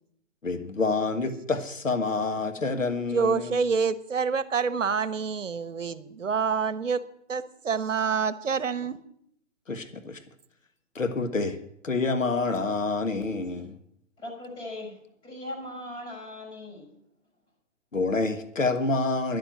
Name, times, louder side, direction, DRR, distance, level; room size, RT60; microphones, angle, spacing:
voice 1, 0.4-3.6 9.7-10.2 11.0-11.6 11.8-13.8 17.9-19.4, left 3 dB, 85° left, 8 dB, 1.6 m, -27 dB
voice 2, 3.1-7.0 7.3-9.0, right 5 dB, 75° right, 15 dB, 1.1 m, -27 dB
voice 3, 14.2-17.0, left 1 dB, 15° left, -1 dB, 5.6 m, -39 dB
11.5 x 8.0 x 9.2 m, 0.73 s
figure-of-eight pair, 130°, 38 cm